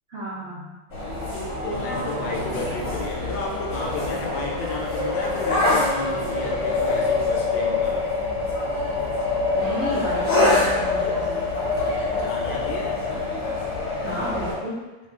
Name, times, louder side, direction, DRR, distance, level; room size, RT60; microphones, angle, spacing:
voice 1, 0.1-0.7 2.5-2.7 9.5-11.6 14.0-14.8, right 1 dB, 80° right, -9 dB, 0.6 m, -32 dB
sound 1, 0.9-14.5, left 3 dB, 50° left, 0.9 m, -25 dB
voice 2, 1.6-8.1 11.8-13.0, left 3 dB, 75° left, -2 dB, 1.3 m, -32 dB
3.1 x 2.3 x 3.6 m, 1.2 s
omnidirectional pair, 2.1 m